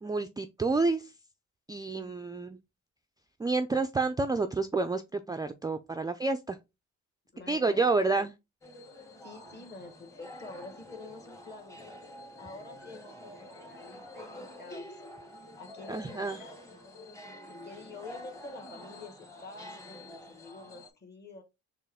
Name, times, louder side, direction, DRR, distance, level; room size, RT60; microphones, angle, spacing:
voice 1, 0.0-1.1 1.7-2.6 3.4-6.6 7.5-8.3 15.9-16.4, right 3 dB, 15° right, 0.3 m, -29 dB
voice 2, 1.8-2.5 7.3-7.9 8.1-8.2 9.2-11.8 12.4-14.9 15.6-16.7 17.5-21.4, left 3 dB, 35° left, 1.5 m, -48 dB
sound 1, 8.6-20.9, left 1 dB, 10° left, 1.0 m, -48 dB
4.5 x 3.0 x 3.4 m
cardioid pair, 90°, 30 cm